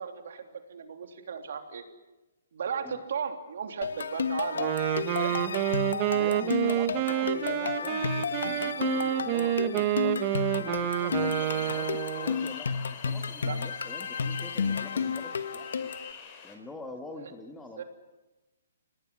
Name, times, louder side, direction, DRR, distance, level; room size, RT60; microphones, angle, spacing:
voice 1, 0.0-1.8 2.5-4.7 5.1-5.4 6.3-6.4 13.4-13.6 17.2-17.3 17.8-17.9, right 7 dB, 65° right, 5 dB, 3.3 m, -36 dB
sound 1, 3.8-16.1, left 6 dB, 75° left, 1.3 m, -32 dB
Wind instrument woodwind instrument, 4.5-12.5, right 13 dB, 35° right, 1.2 m, -28 dB
voice 2, 6.1-10.3 10.6-15.9 16.4-17.8, left 2 dB, 10° left, 4 dB, 1.9 m, -45 dB
sound 2, 11.6-16.6, left 7 dB, 35° left, 4.4 m, -46 dB
25.0 x 19.0 x 7.8 m, 1.1 s
hypercardioid pair, 145°, 0 cm